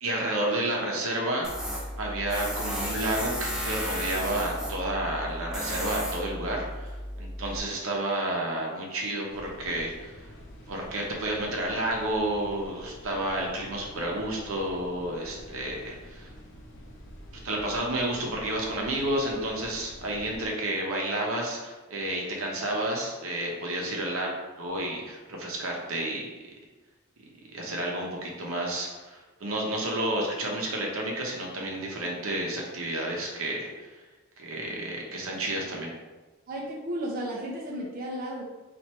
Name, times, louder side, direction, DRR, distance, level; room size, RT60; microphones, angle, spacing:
voice 1, 0.0-1.5 2.0-6.9 7.2-10.3 10.7-16.3 17.4-26.3 27.5-33.9 34.4-35.9, right 1 dB, 80° right, -1 dB, 0.8 m, -31 dB
Tools, 1.4-7.6, equal, 5° right, 0.6 m, -34 dB
sound 1, 9.3-20.5, equal, 60° left, 0.7 m, -47 dB
voice 2, 36.5-38.4, right 1 dB, 45° right, -3 dB, 0.5 m, -33 dB
3.0 x 2.5 x 4.3 m, 1.2 s
head